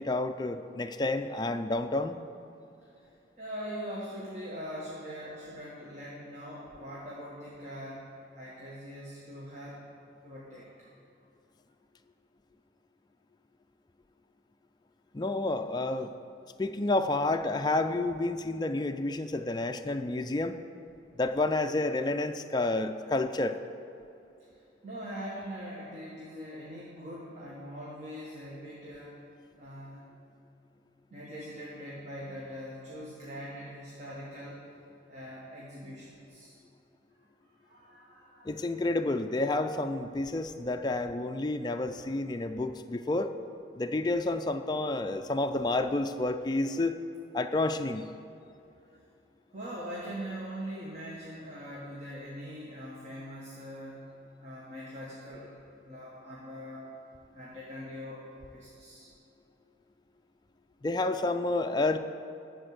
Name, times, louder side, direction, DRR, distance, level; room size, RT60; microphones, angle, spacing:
voice 1, 0.0-2.2 15.1-16.1 16.6-20.6 21.2-23.6 38.4-43.3 43.8-46.9 47.3-48.1 60.8-62.0, left 2 dB, 25° left, 7 dB, 0.4 m, -30 dB
voice 2, 3.4-8.1 8.3-9.8 10.2-10.9 24.8-29.2 29.6-30.0 31.1-34.6 35.1-36.5 37.6-38.5 49.5-54.0 54.4-56.8 57.3-58.2 58.5-59.1, equal, 40° right, -6 dB, 1.5 m, -42 dB
13.0 x 4.5 x 7.9 m, 2.7 s
head